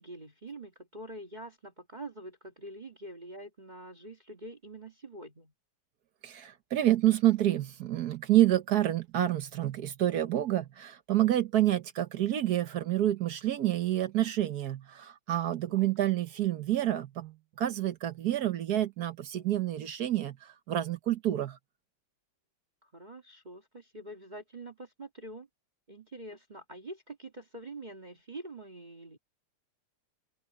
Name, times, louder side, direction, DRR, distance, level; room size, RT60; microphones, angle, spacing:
voice 1, 0.0-5.5 15.7-15.9 22.8-25.5 25.9-29.2, right 1 dB, 20° right, 1.5 m, -45 dB
voice 2, 6.2-21.6, right 13 dB, 60° right, 1.1 m, -28 dB
omnidirectional pair, 2.4 m